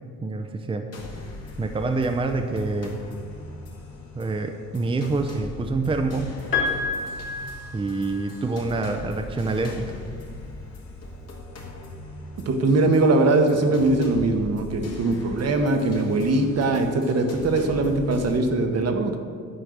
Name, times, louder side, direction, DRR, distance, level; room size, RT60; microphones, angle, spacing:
voice 1, 0.2-0.9 1.6-3.0 4.1-6.3 7.7-9.8, right 3 dB, 20° right, 5 dB, 0.6 m, -26 dB
sound 1, 0.9-18.4, left 2 dB, 55° left, 1.9 m, -40 dB
Piano, 6.5-8.5 9.8-9.9, left 4 dB, 40° left, 2.1 m, -29 dB
voice 2, 12.5-19.2, right 2 dB, 55° right, 5 dB, 1.1 m, -21 dB
9.9 x 4.5 x 6.6 m, 2.2 s
cardioid pair, 90°, 30 cm